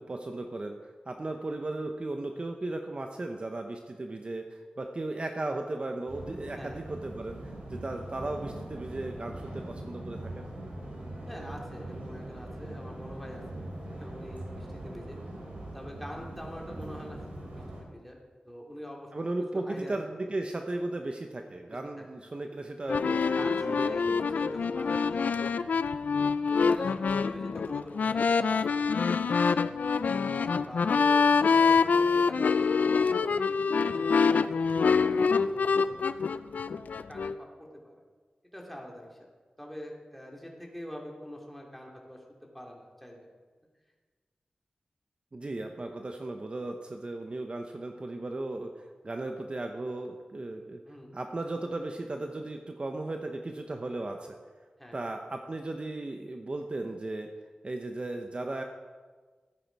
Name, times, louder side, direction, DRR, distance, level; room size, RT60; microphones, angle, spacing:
voice 1, 0.0-10.4 19.1-24.4 45.3-48.7 49.0-50.8 51.1-54.4 54.9-57.3 57.6-58.6, right 2 dB, 40° right, 4 dB, 0.9 m, -36 dB
sound 1, 6.1-17.8, right 1 dB, 75° right, 3.7 m, -41 dB
voice 2, 11.3-13.7 14.0-15.2 15.7-18.2 18.4-19.1 19.5-20.0 21.7-22.2 23.3-26.0 26.5-29.6 30.3-36.3 37.1-38.0 38.5-39.3 39.6-43.3 50.8-51.2 54.8-55.0, equal, 5° left, -1 dB, 2.9 m, -45 dB
sound 2, 22.9-37.3, left 5 dB, 85° left, 0.4 m, -25 dB
14.5 x 9.4 x 4.7 m, 1.4 s
wide cardioid pair, 65°, 3 cm